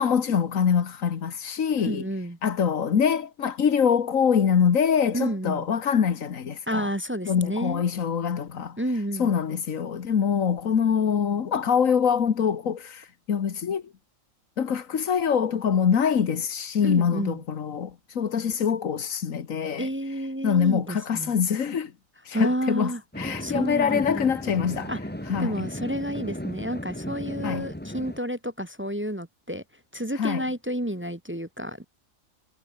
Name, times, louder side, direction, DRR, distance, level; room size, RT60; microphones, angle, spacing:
voice 1, 0.0-2.0 2.4-6.9 7.3-8.8 9.2-13.8 14.6-19.9 20.4-21.9 22.2-24.9 25.2-25.7 27.4-27.7 30.2-30.4, left 7 dB, 75° left, 1.8 m, -24 dB
voice 2, 1.8-2.4 5.1-5.7 6.7-7.8 8.8-9.3 16.8-17.4 19.8-21.3 22.3-23.0 23.4-24.3 24.9-25.0 25.4-29.6 29.9-31.8, equal, 10° right, 0.8 m, -30 dB
sound 1, 23.1-28.2, equal, 5° left, 3.0 m, -36 dB
omnidirectional pair, 1.4 m